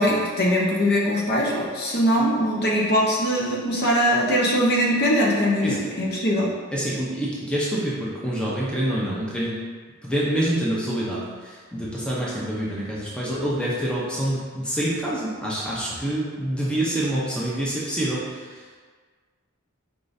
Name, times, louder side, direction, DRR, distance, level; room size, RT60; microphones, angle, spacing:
voice 1, 0.0-6.5, equal, 50° left, -3 dB, 0.8 m, -21 dB
voice 2, 6.7-9.6 10.0-18.6, right 1 dB, 5° left, -7 dB, 0.7 m, -26 dB
4.7 x 3.7 x 2.6 m, 1.5 s
head